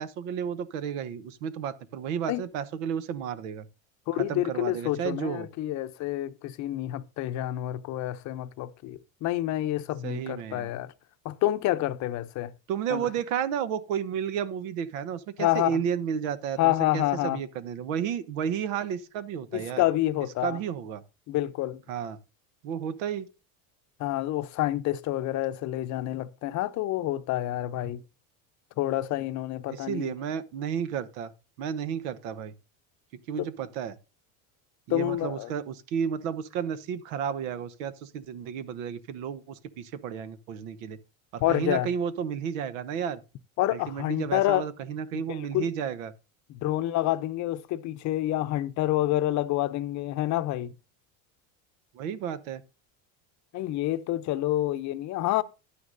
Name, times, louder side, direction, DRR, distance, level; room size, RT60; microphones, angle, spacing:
voice 1, 0.0-3.7 4.2-5.5 10.0-10.7 12.7-19.8 20.4-21.0 21.9-22.2 22.6-23.3 29.7-31.3 31.6-32.5 33.3-34.0 34.9-41.0 41.3-43.2 43.7-46.1 51.9-52.6, right 8 dB, 80° right, 1.0 m, -32 dB
voice 2, 4.1-10.9 11.2-12.5 12.9-13.1 15.4-15.8 16.6-17.4 19.5-20.6 21.3-21.8 24.0-28.0 28.8-30.1 33.4-33.5 34.9-35.5 41.4-41.9 43.6-44.7 45.1-45.7 46.5-50.7 53.5-55.4, left 15 dB, 45° left, 0.7 m, -28 dB
11.0 x 9.5 x 2.6 m
supercardioid pair, 120°, 39 cm